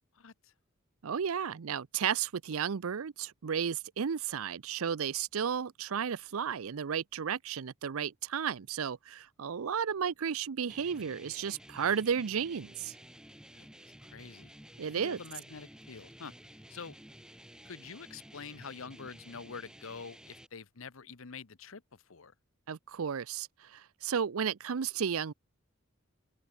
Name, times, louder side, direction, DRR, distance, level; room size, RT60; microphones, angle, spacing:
voice 1, 0.1-0.5 13.5-14.5 15.0-17.0 17.6-22.3, left 5 dB, 70° left, 0.9 m, -47 dB
voice 2, 1.0-12.9 14.8-15.2 22.7-25.3, right 7 dB, 80° right, 0.5 m, -33 dB
sound 1, 10.7-20.5, equal, 5° right, 2.0 m, -53 dB
head